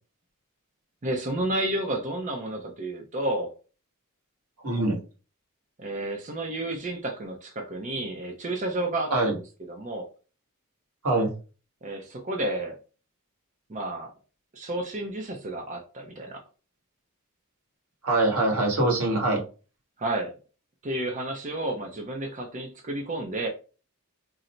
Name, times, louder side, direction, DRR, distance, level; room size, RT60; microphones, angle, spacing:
voice 1, 1.0-3.5 5.8-9.3 9.7-10.1 11.8-12.8 13.7-14.1 14.5-16.4 20.0-20.3 20.8-23.5, right 1 dB, 35° right, 2 dB, 0.5 m, -31 dB
voice 2, 4.6-5.0 9.1-9.3 11.0-11.3 18.0-19.4, right 2 dB, 85° right, 0 dB, 1.5 m, -23 dB
3.8 x 2.0 x 4.2 m, 0.34 s
head